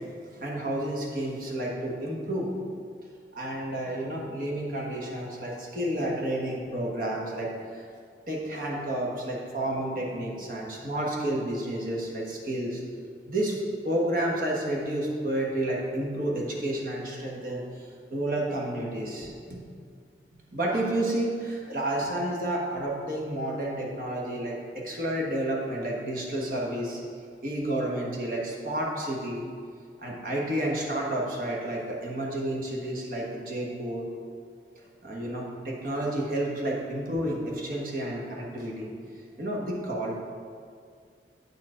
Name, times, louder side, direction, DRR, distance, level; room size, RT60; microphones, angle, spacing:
voice 1, 0.3-2.5 3.3-7.9 8.3-12.8 13.3-19.6 20.5-27.0 27.4-29.4 30.0-34.1 35.0-40.1, right 1 dB, 50° right, -2 dB, 1.3 m, -30 dB
8.4 x 4.6 x 4.9 m, 2.2 s
head